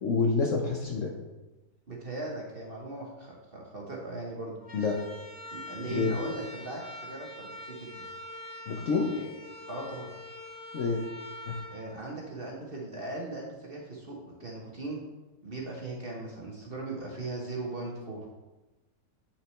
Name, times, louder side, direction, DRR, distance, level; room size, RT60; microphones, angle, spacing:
voice 1, 0.0-1.1 4.7-5.0 5.9-6.1 8.7-9.1 10.7-11.0 11.5-11.6, left 4 dB, 60° left, 1 dB, 0.9 m, -27 dB
voice 2, 1.9-4.6 5.5-8.0 9.1-9.3 9.7-10.1 11.7-15.0 15.4-18.3, right 2 dB, 40° right, -2 dB, 1.0 m, -39 dB
sound 1, 4.6-12.7, left 1 dB, 30° left, 0.7 m, -44 dB
8.3 x 5.8 x 3.2 m, 1.1 s
omnidirectional pair, 1.9 m